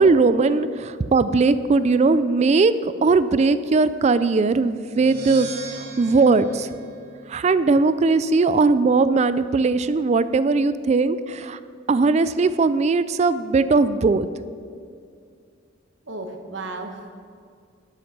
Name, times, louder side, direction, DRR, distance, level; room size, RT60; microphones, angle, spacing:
voice 1, 0.0-6.7 7.3-11.6 11.9-14.3, right 3 dB, 35° right, 14 dB, 0.3 m, -19 dB
sound 1, 4.9-7.7, right 4 dB, 55° right, 1.7 m, -39 dB
voice 2, 16.1-17.1, right 2 dB, 70° right, 4 dB, 1.4 m, -34 dB
12.0 x 6.9 x 6.7 m, 2.3 s
head